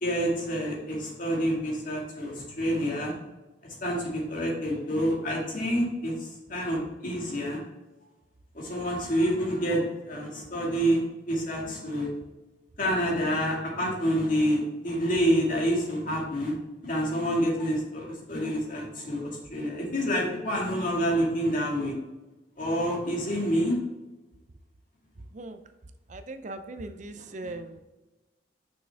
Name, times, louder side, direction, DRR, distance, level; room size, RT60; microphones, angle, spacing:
voice 1, 0.0-3.1 3.6-7.6 8.5-11.0 11.3-12.1 12.8-16.5 16.8-22.0 22.6-23.8 27.4-27.5, equal, 45° left, -2 dB, 2.1 m, -28 dB
voice 2, 26.1-27.8, right 2 dB, 40° right, 9 dB, 0.5 m, -39 dB
6.3 x 6.0 x 3.5 m, 1.1 s
head